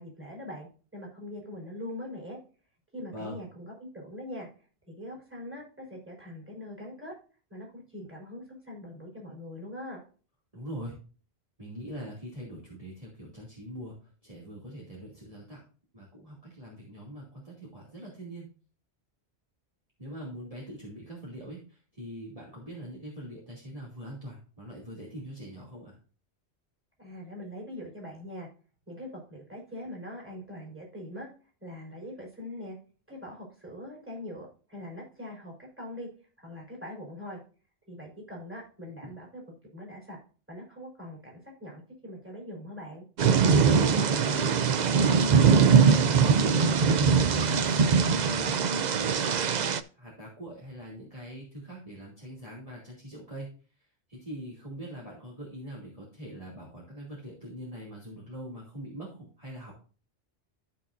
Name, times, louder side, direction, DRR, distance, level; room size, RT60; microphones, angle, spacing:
voice 1, 0.0-2.4 2.9-4.5 4.9-7.1 7.5-10.0 27.0-28.5 28.9-31.3 31.6-32.8 33.1-36.1 36.4-37.4 37.9-39.4 39.7-40.2 40.5-43.0, left 1 dB, 10° right, -1 dB, 4.5 m, -42 dB
voice 2, 10.5-10.9 11.6-14.0 14.2-15.6 15.9-18.5 20.0-26.0 39.0-39.1 44.3-44.9 45.5-47.1 47.4-48.0 48.3-49.5 50.0-53.5 54.1-59.7, equal, 30° right, -5 dB, 2.9 m, -42 dB
Thunder / Rain, 43.2-49.8, right 6 dB, 50° right, 0.6 m, -22 dB
14.0 x 6.1 x 2.6 m, 0.37 s
omnidirectional pair, 1.1 m